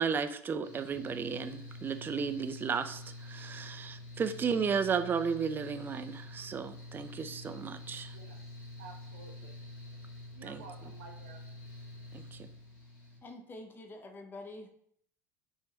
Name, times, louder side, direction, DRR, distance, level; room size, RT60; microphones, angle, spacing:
voice 1, 0.0-8.2 10.4-10.6 12.1-12.5, right 6 dB, 25° right, 9 dB, 0.4 m, -34 dB
Mechanical fan, 0.6-13.2, left 1 dB, 45° left, 1.3 m, -47 dB
voice 2, 8.1-8.4 8.8-9.6 10.3-11.4, right 5 dB, 65° right, 2 dB, 0.6 m, -51 dB
voice 3, 13.2-14.7, left 2 dB, 25° left, 5 dB, 0.7 m, -46 dB
3.5 x 2.6 x 4.0 m, 0.64 s
figure-of-eight pair, 70°, 9 cm